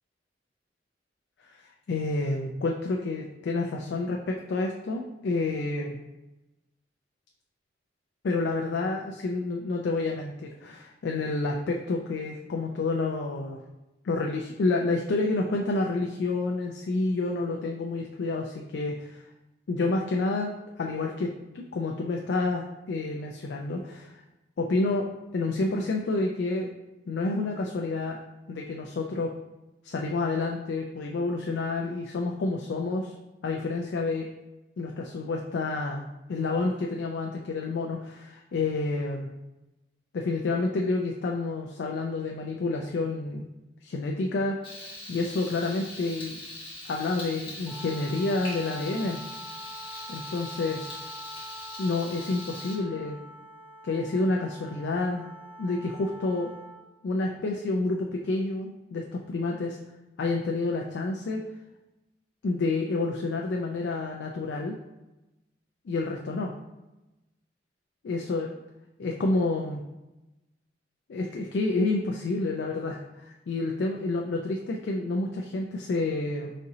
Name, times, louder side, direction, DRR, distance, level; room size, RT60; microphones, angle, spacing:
voice 1, 1.9-6.0 8.2-13.6 14.0-19.2 19.7-20.5 20.8-24.1 24.6-26.7 27.1-28.2 28.5-29.3 29.8-33.1 33.4-34.3 34.8-39.3 40.1-43.4 43.8-44.6 45.1-46.3 46.8-49.2 50.1-50.9 51.8-53.2 53.8-55.2 55.6-56.5 57.0-59.8 60.2-61.4 62.4-64.8 65.9-66.5 68.0-68.5 69.0-69.8 71.1-76.5, left 3 dB, 70° left, 1 dB, 0.4 m, -29 dB
Frying (food), 44.6-52.8, left 1 dB, 30° left, 1.2 m, -42 dB
Wind instrument woodwind instrument, 47.6-56.8, equal, 15° left, 0.5 m, -45 dB
4.2 x 3.7 x 2.7 m, 1.0 s
head